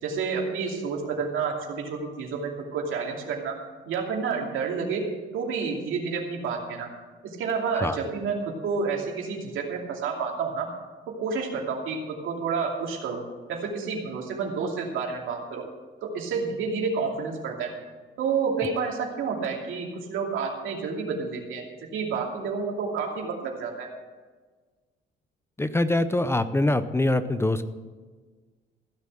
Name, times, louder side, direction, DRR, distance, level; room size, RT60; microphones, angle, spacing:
voice 1, 0.0-3.6 3.9-6.9 7.2-10.7 11.1-13.2 13.5-15.6 16.0-17.7 18.2-21.6 21.9-23.9, right 5 dB, 85° right, 0 dB, 2.7 m, -29 dB
voice 2, 25.6-27.6, left 2 dB, 10° left, 12 dB, 0.7 m, -24 dB
15.5 x 7.1 x 7.8 m, 1.4 s
cardioid pair, 90°, 20 cm